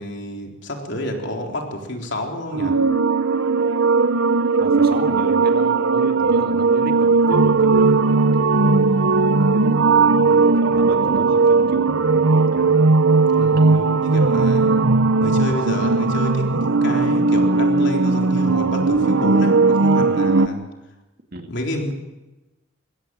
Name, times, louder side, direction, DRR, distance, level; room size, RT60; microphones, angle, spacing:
voice 1, 0.0-2.8 13.4-14.9 15.2-20.6 21.5-21.9, left 1 dB, 55° left, 2 dB, 3.8 m, -29 dB
sound 1, 2.5-20.5, right 3 dB, 65° right, 0.9 m, -17 dB
voice 2, 4.6-8.0 10.2-12.9 21.3-21.5, right 1 dB, 45° right, 5 dB, 2.3 m, -33 dB
22.5 x 16.5 x 9.2 m, 1.1 s
head